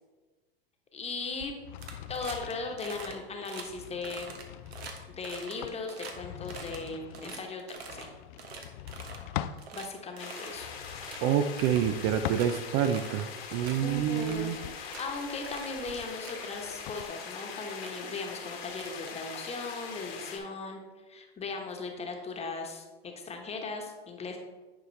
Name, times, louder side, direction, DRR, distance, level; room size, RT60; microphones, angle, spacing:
voice 1, 0.9-1.5 2.1-4.4 5.1-8.1 9.7-10.7 13.8-20.8 21.1-24.4, left 3 dB, 20° left, 2 dB, 1.2 m, -38 dB
sound 1, 1.3-9.7 10.5-12.9 13.4-17.1, left 12 dB, 50° left, 0.4 m, -43 dB
sound 2, 1.8-2.5 2.8-3.1 3.4-3.6 4.0-6.1 6.4-8.0 8.4-9.3 9.6-9.9 10.2-10.5 10.8-11.2 11.6-12.5 12.8-13.2 13.5-13.8 14.2-15.0 15.4-15.7 16.1-16.4 17.3-17.4 17.7-18.0 18.7-19.6, right 5 dB, 80° right, 1.2 m, -45 dB
sound 3, 10.2-20.4, left 6 dB, 70° left, 1.7 m, -42 dB
voice 2, 11.2-14.6, right 9 dB, 40° right, 8 dB, 0.4 m, -27 dB
9.9 x 4.8 x 3.2 m, 1.3 s
hypercardioid pair, 105°, 31 cm